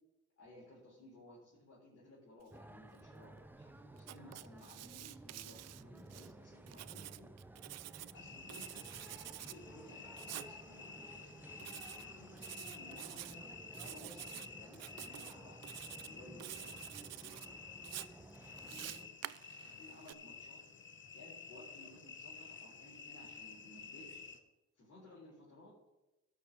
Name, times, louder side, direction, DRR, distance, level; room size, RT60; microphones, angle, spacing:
voice 1, 0.4-7.3 8.1-9.0 9.4-11.4 12.0-13.4 13.8-15.6 16.0-17.7 18.6-19.0 19.5-20.6 21.1-24.2 24.8-25.7, left 1 dB, 55° left, -6 dB, 3.9 m, -58 dB
sound 1, 2.5-19.1, right 2 dB, 5° right, 0.6 m, -55 dB
Writing, 4.0-6.3 6.7-8.1 8.5-9.6 10.2-10.5 11.6-12.1 12.4-13.3 13.7-14.5 14.7-15.3 15.6-16.1 16.4-17.5 17.8-20.1, right 14 dB, 60° right, 0.4 m, -48 dB
sound 2, 8.1-24.4, left 5 dB, 40° left, 1.0 m, -52 dB
13.0 x 4.9 x 7.3 m, 1.0 s
cardioid pair, 90°, 30 cm